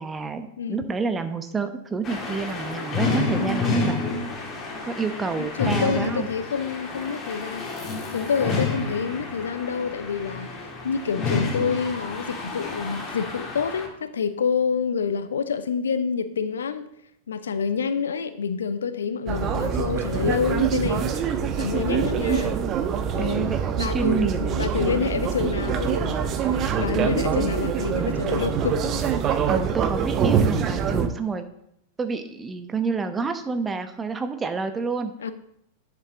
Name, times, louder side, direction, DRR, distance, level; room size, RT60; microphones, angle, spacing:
voice 1, 0.0-4.0 4.8-6.3 23.2-24.4 26.7-27.1 29.5-31.5 32.0-35.1, right 4 dB, 15° right, 8 dB, 1.0 m, -28 dB
sound 1, 2.0-13.9, left 3 dB, 25° left, 2.2 m, -29 dB
voice 2, 5.4-10.5 10.8-16.9 17.3-21.2 21.6-22.6 23.1-29.1 35.2-35.3, left 6 dB, 70° left, 12 dB, 0.7 m, -28 dB
sound 2, 19.3-31.1, right 7 dB, 35° right, 0.9 m, -25 dB
10.5 x 7.5 x 3.8 m, 0.77 s
figure-of-eight pair, 95°, 0 cm